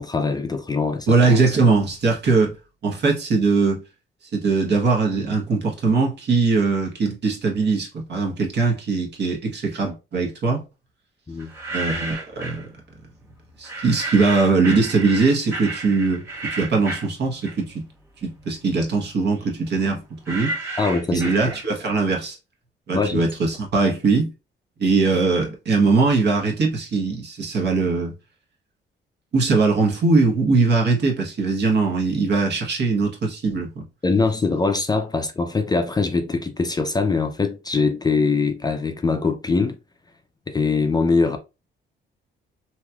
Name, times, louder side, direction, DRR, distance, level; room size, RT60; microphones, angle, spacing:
voice 1, 0.0-1.2 11.3-11.5 20.8-21.2 22.9-23.2 34.0-39.8 40.5-41.4, left 4 dB, 20° left, 0.4 m, -22 dB
voice 2, 1.1-2.5 2.8-3.8 4.3-10.6 11.7-12.7 13.6-17.9 18.2-20.6 21.1-22.4 22.9-24.3 24.8-28.1 29.3-33.8, right 4 dB, 60° right, 1.2 m, -21 dB
sound 1, 11.4-12.7 13.6-17.9 18.2-22.0, right 2 dB, 10° right, 1.3 m, -32 dB
3.1 x 2.9 x 2.3 m
cardioid pair, 90°, 20 cm